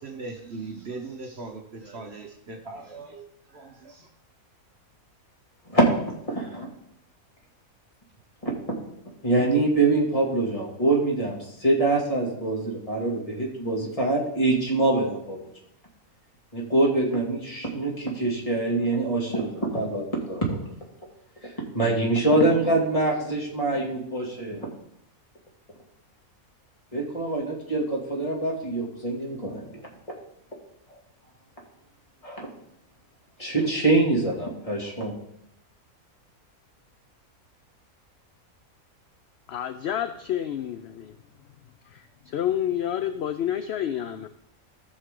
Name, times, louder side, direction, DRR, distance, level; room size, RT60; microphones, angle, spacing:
voice 1, 0.0-4.1, right 3 dB, 50° right, 3 dB, 1.1 m, -39 dB
voice 2, 5.7-6.7 8.4-8.5 9.2-15.4 16.5-20.6 21.4-24.7 26.9-29.6 32.2-32.5 33.4-35.1, right 2 dB, 25° left, -2 dB, 2.5 m, -24 dB
voice 3, 39.5-41.2 41.9-44.3, left 10 dB, 65° left, 10 dB, 0.6 m, -29 dB
15.0 x 6.4 x 3.8 m, 0.76 s
omnidirectional pair, 1.5 m